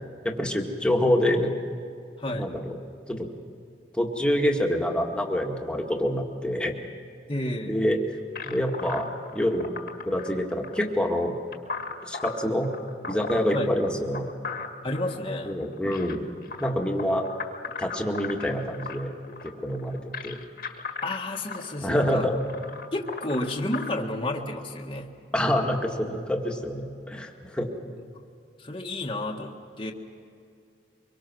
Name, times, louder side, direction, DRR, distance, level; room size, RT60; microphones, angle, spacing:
voice 1, 0.2-1.5 2.3-2.7 3.1-3.3 3.9-6.7 7.7-8.0 8.5-9.7 10.1-11.3 12.0-12.7 13.0-14.3 15.5-16.3 16.6-17.3 17.8-19.1 19.6-20.4 21.8-22.4 25.3-27.7, left 1 dB, 5° left, 1 dB, 2.0 m, -26 dB
voice 2, 2.2-2.5 7.3-7.8 13.5-13.7 14.8-15.6 21.0-22.3 22.9-25.1 27.9-28.0 28.6-29.9, left 1 dB, 30° left, -1 dB, 1.5 m, -31 dB
sound 1, 8.4-23.9, left 4 dB, 55° left, 1.7 m, -38 dB
24.5 x 23.5 x 6.2 m, 2.5 s
head